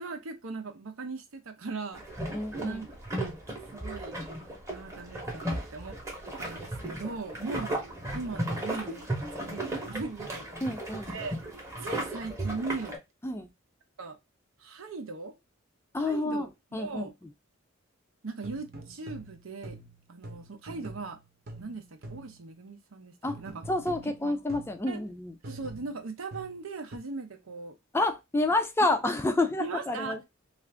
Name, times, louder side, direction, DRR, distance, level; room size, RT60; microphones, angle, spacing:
voice 1, 0.0-2.0 2.6-2.9 3.7-4.2 4.7-6.0 6.4-7.7 8.1-10.7 11.1-11.4 11.8-13.0 14.0-14.2 14.6-15.3 16.0-17.1 18.2-19.8 20.1-21.2 21.6-23.6 24.2-24.4 24.9-25.0 25.4-27.8 29.6-30.2, right 3 dB, 85° right, 0.7 m, -39 dB
sound 1, 1.9-13.0, right 1 dB, 15° right, 0.8 m, -35 dB
voice 2, 2.3-2.8 10.6-11.1 13.2-13.5 15.9-17.1 23.2-23.4 23.7-25.3 27.9-30.2, left 2 dB, 10° left, 0.3 m, -29 dB
sound 2, 18.4-22.5 23.3-24.9 25.4-27.0, right 1 dB, 50° right, 0.8 m, -45 dB
2.5 x 2.5 x 3.3 m
head